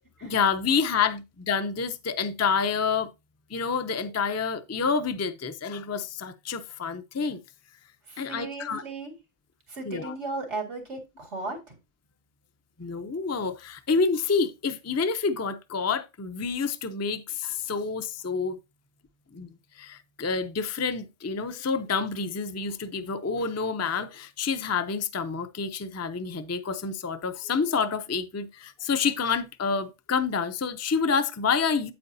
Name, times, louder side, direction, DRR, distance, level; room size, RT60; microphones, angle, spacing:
voice 1, 0.2-3.1 3.5-7.4 8.2-8.8 9.9-10.1 12.8-18.6 19.3-19.5 19.7-31.9, left 5 dB, 20° left, 0.4 m, -28 dB
voice 2, 8.1-9.1 9.7-11.8, right 3 dB, 90° right, 2.4 m, -36 dB
8.6 x 8.5 x 2.6 m
omnidirectional pair, 1.2 m